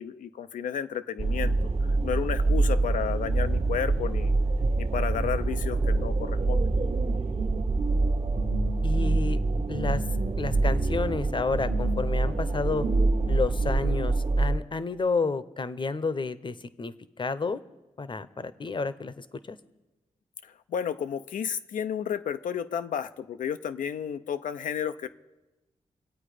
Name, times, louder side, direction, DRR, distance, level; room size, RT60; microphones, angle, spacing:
voice 1, 0.0-1.5 1.8-4.3 4.8-6.7 20.4-25.1, left 8 dB, 90° left, 11 dB, 0.6 m, -32 dB
sound 1, 1.2-14.6, right 3 dB, 50° right, 1.1 m, -25 dB
voice 2, 8.8-9.4 9.7-10.0 10.4-12.9 13.3-17.6 18.0-19.6, left 4 dB, 40° left, 14 dB, 0.8 m, -30 dB
25.5 x 8.5 x 5.0 m, 1.1 s
cardioid pair, 75°, 13 cm